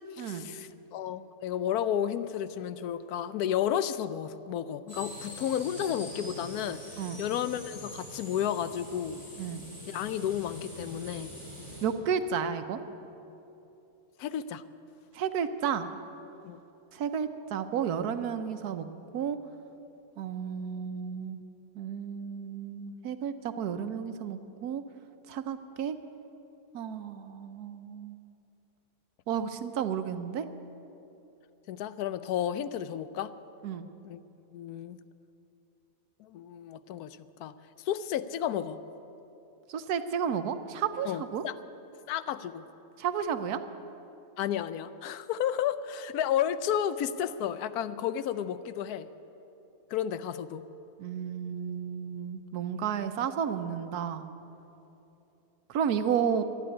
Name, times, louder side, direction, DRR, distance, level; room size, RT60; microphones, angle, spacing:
voice 1, 0.0-9.2 9.9-11.3 14.2-14.6 16.4-16.6 31.7-33.3 34.0-34.2 34.5-35.0 36.2-37.5 37.9-38.8 41.0-41.5 42.1-42.6 44.4-49.1 49.9-50.6, left 10 dB, 80° left, 14 dB, 1.1 m, -32 dB
sound 1, 4.9-11.9, left 1 dB, 20° left, 4.0 m, -44 dB
voice 2, 11.8-12.8 15.1-15.9 16.9-18.9 19.1-19.4 20.2-21.4 21.7-24.8 25.3-26.0 26.7-28.2 29.3-30.5 33.6-33.9 39.7-41.4 43.0-43.6 51.0-54.3 55.7-56.4, right 7 dB, 85° right, 10 dB, 1.3 m, -32 dB
12.0 x 11.0 x 9.9 m, 3.0 s
omnidirectional pair, 1.6 m